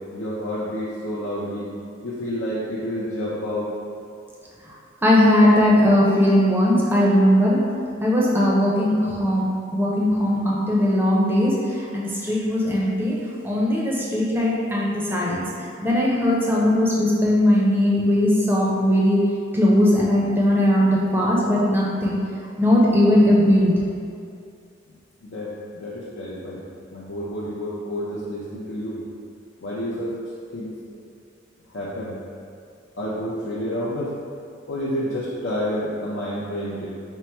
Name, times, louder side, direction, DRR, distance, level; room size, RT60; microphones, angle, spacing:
voice 1, 0.1-1.7 2.0-3.7 25.2-26.6 26.9-29.0 29.6-30.2 30.5-31.0 31.7-32.2 33.0-34.1 34.7-36.9, equal, 70° left, -7 dB, 0.5 m, -29 dB
voice 2, 5.0-7.6 8.0-9.5 9.7-15.5 15.8-19.2 19.5-22.2 22.6-23.7, left 1 dB, 10° right, -4 dB, 0.5 m, -19 dB
4.5 x 2.0 x 4.3 m, 2.4 s
head